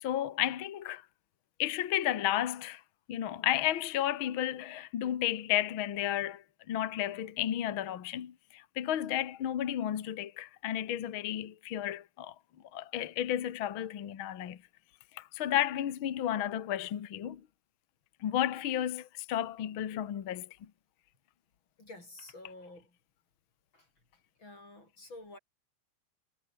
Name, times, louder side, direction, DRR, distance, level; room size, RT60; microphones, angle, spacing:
voice 1, 0.0-1.0 1.6-2.8 3.1-12.3 12.7-14.6 15.1-17.4 18.2-20.5, left 12 dB, 65° left, 1.2 m, -32 dB
voice 2, 21.8-23.0 23.7-23.9 24.4-25.4, left 2 dB, 25° left, 8.8 m, -50 dB
omnidirectional pair, 4.7 m